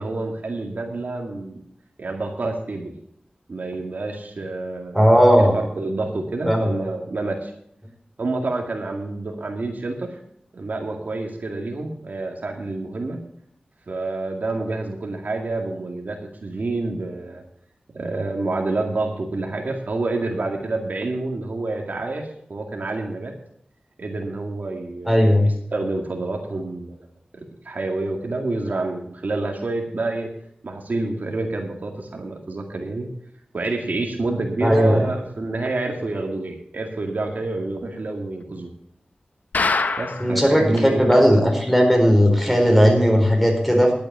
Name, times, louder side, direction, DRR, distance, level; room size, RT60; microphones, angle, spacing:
voice 1, 0.0-1.6 2.0-2.9 3.5-5.2 5.5-7.5 8.2-10.1 10.5-13.2 13.9-17.4 17.9-23.3 24.0-27.0 27.4-30.3 30.6-33.1 33.5-38.7 40.0-41.1, right 2 dB, 75° right, 2 dB, 2.1 m, -28 dB
voice 2, 4.9-5.5 6.5-6.7 25.1-25.5 34.6-35.0 40.2-43.9, equal, ahead, 1 dB, 4.5 m, -16 dB
sound 1, 39.5-40.4 40.8-40.9 41.1-41.2 41.7-41.8, left 3 dB, 75° left, 0.8 m, -23 dB
11.5 x 8.5 x 7.0 m, 0.69 s
wide cardioid pair, 50°, 3 cm